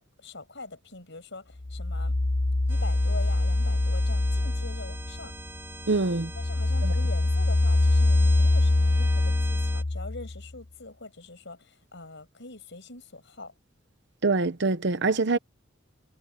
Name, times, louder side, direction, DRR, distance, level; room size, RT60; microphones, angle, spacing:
voice 1, 0.0-2.1 2.7-5.3 6.4-13.5, left 3 dB, 65° left, 7.3 m, -43 dB
sound 1, 1.6-5.5 5.9-10.4, left 2 dB, 30° left, 0.8 m, -24 dB
sound 2, 2.7-9.8, right 2 dB, 10° right, 3.0 m, -43 dB
voice 2, 5.9-6.3 6.8-6.9 14.2-15.4, right 3 dB, 60° right, 0.9 m, -24 dB
head